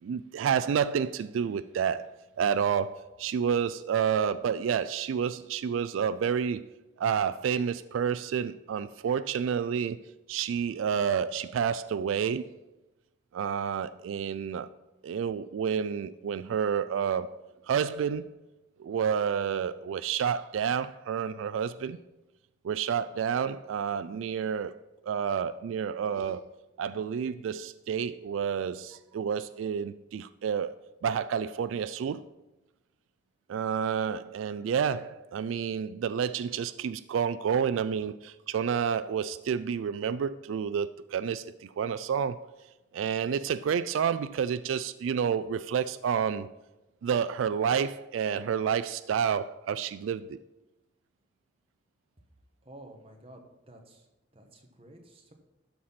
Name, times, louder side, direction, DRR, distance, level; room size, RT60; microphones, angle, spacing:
voice 1, 0.0-6.7 7.0-10.0 10.3-12.6 13.3-14.7 15.0-18.3 18.8-22.0 22.6-24.8 25.1-26.4 26.8-32.3 33.5-42.5 42.9-46.5 47.0-50.4, right 7 dB, 85° right, 0.3 m, -29 dB
voice 2, 52.6-54.1 54.3-55.3, right 1 dB, 30° right, 1.2 m, -51 dB
12.5 x 4.2 x 5.8 m
head